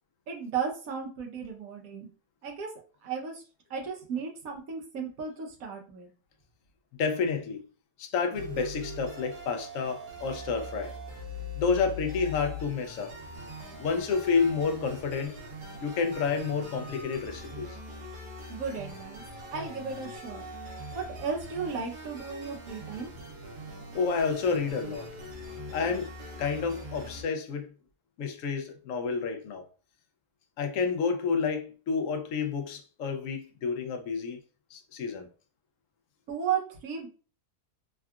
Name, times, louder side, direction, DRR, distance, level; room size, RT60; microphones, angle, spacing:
voice 1, 0.3-2.1 2.4-2.7 3.0-3.4 3.7-6.1 18.5-19.2 19.5-20.4 20.9-23.1 36.3-37.1, right 6 dB, 65° right, 1.1 m, -34 dB
voice 2, 7.0-7.6 8.0-10.9 11.6-13.1 13.8-15.3 15.8-17.8 23.9-25.1 25.7-26.1 26.4-27.7 28.2-29.7 30.6-34.4 34.7-35.3, left 5 dB, 65° left, 0.8 m, -29 dB
sound 1, 8.3-27.2, left 1 dB, 90° right, 1.3 m, -42 dB
3.6 x 2.3 x 2.3 m
omnidirectional pair, 1.7 m